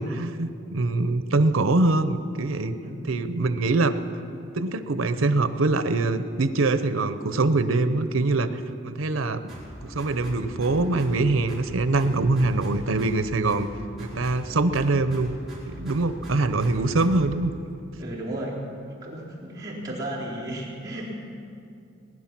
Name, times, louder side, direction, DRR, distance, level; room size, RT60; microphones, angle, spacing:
voice 1, 0.0-2.7 3.1-4.0 4.5-9.4 9.8-13.7 14.0-15.3 15.7-17.5, right 2 dB, 85° right, 11 dB, 0.8 m, -23 dB
voice 2, 2.8-3.2 18.0-18.6 19.0-21.1, right 1 dB, 20° right, -9 dB, 3.7 m, -34 dB
sound 1, 9.5-11.2 11.5-13.2 13.5-15.2 15.5-17.4, equal, ahead, 4.7 m, -41 dB
20.0 x 11.0 x 6.0 m, 2.6 s
head